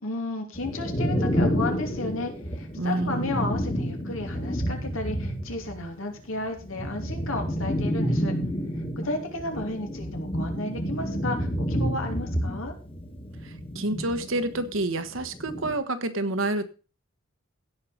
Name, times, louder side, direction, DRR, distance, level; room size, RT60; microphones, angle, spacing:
voice 1, 0.0-8.4 8.7-12.7, left 2 dB, 80° left, 4 dB, 2.8 m, -33 dB
sound 1, 0.5-5.9 6.1-14.7 15.0-15.7, equal, 25° left, 1.9 m, -29 dB
voice 2, 2.8-3.3 13.4-16.6, right 2 dB, 75° right, 11 dB, 1.4 m, -28 dB
16.5 x 5.7 x 5.1 m, 0.35 s
head